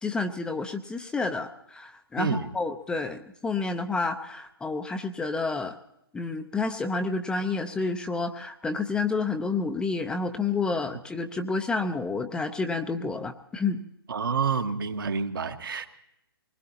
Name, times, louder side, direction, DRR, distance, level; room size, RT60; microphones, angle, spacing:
voice 1, 0.0-5.7 6.1-13.8, left 3 dB, 5° left, 6 dB, 0.6 m, -29 dB
voice 2, 2.2-2.5 14.1-15.9, right 5 dB, 60° right, 6 dB, 1.6 m, -28 dB
24.5 x 20.5 x 2.8 m, 0.79 s
figure-of-eight pair, 125°, 13 cm